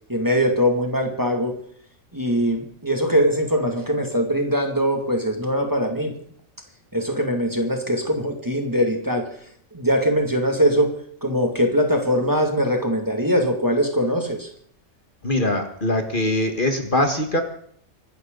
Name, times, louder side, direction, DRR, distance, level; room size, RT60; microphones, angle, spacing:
voice 1, 0.1-1.6 2.1-6.2 6.9-9.3 9.7-14.5, equal, 15° right, 3 dB, 2.4 m, -22 dB
voice 2, 15.2-17.4, left 1 dB, 40° left, 5 dB, 1.8 m, -22 dB
24.5 x 12.5 x 4.0 m, 0.62 s
omnidirectional pair, 1.3 m